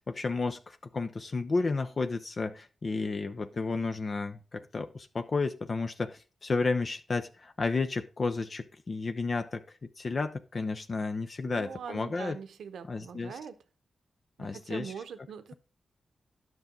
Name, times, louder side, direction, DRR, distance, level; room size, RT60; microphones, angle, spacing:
voice 1, 0.0-12.4 12.9-13.4 14.4-14.9, left 3 dB, 55° left, 8 dB, 0.7 m, -32 dB
voice 2, 11.4-13.6 14.4-15.5, right 7 dB, 85° right, 11 dB, 0.9 m, -42 dB
9.7 x 6.2 x 5.2 m, 0.34 s
cardioid pair, 45°, 0 cm